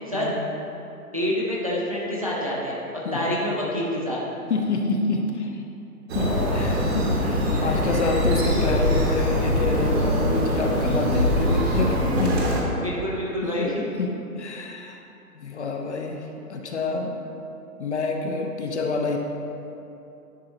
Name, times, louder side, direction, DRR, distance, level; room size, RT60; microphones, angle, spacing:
voice 1, 1.1-2.8 3.1-4.2 12.8-13.9, equal, 25° right, -6 dB, 0.4 m, -27 dB
voice 2, 4.5-5.6 6.1-12.4 13.4-13.7 14.0-15.0 15.3-16.2 16.5-17.2 17.8-19.2, left 3 dB, 45° left, 2 dB, 0.6 m, -27 dB
sound 1, 6.1-12.6, equal, 40° right, 1.1 m, -23 dB
10.0 x 3.9 x 2.6 m, 2.8 s
figure-of-eight pair, 140°, 47 cm